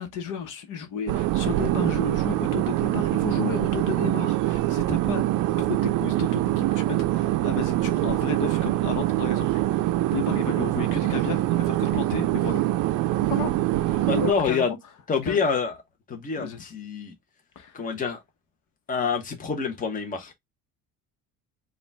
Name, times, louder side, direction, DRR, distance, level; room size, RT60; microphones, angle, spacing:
voice 1, 0.0-5.4 5.7-12.6 13.2-13.5 13.8-14.8 15.2-15.4 16.4-16.6 17.5-18.0, left 6 dB, 65° left, 1.2 m, -33 dB
sound 1, 1.1-14.3, right 15 dB, 60° right, 0.5 m, -24 dB
voice 2, 14.0-14.7 15.1-15.7 16.1-17.1 17.7-18.2 18.9-20.3, left 5 dB, 25° left, 1.0 m, -27 dB
5.0 x 2.5 x 3.3 m
cardioid pair, 160°, 35 cm